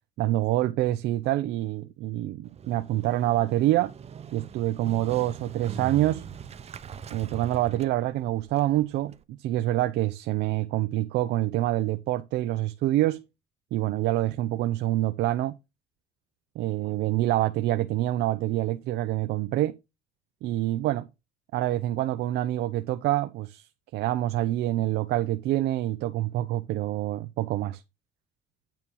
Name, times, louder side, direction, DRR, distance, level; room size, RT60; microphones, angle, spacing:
voice 1, 0.2-3.9 4.3-6.3 7.1-9.1 9.4-13.2 13.7-15.5 16.6-19.8 20.4-21.1 21.5-23.7 23.9-27.8, right 15 dB, 80° right, 0.7 m, -26 dB
Motorcycle, 2.5-9.2, right 8 dB, 40° right, 0.9 m, -41 dB
9.0 x 4.5 x 5.6 m
cardioid pair, 110°, 17 cm